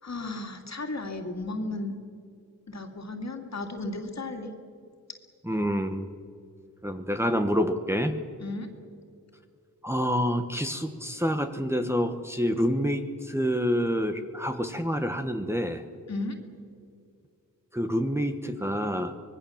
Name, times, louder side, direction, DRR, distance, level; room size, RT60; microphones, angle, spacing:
voice 1, 0.0-1.9 2.7-4.5 8.4-8.7 16.1-16.4 16.8-16.9, left 2 dB, 55° left, 4 dB, 2.7 m, -34 dB
voice 2, 5.4-6.1 6.8-8.2 9.8-15.8 17.7-19.1, equal, 10° right, 5 dB, 1.3 m, -27 dB
25.0 x 20.0 x 7.3 m, 2.4 s
wide cardioid pair, 100°, 33 cm